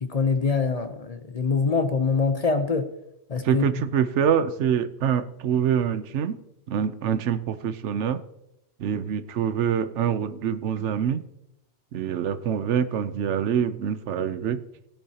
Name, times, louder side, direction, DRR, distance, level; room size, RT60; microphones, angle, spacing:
voice 1, 0.0-2.9 3.3-3.7, left 4 dB, 40° left, 8 dB, 0.7 m, -24 dB
voice 2, 3.4-6.4 6.7-8.2 8.8-11.2 11.9-14.6, right 8 dB, 85° right, 13 dB, 1.0 m, -25 dB
17.5 x 10.5 x 2.9 m, 0.87 s
omnidirectional pair, 1.2 m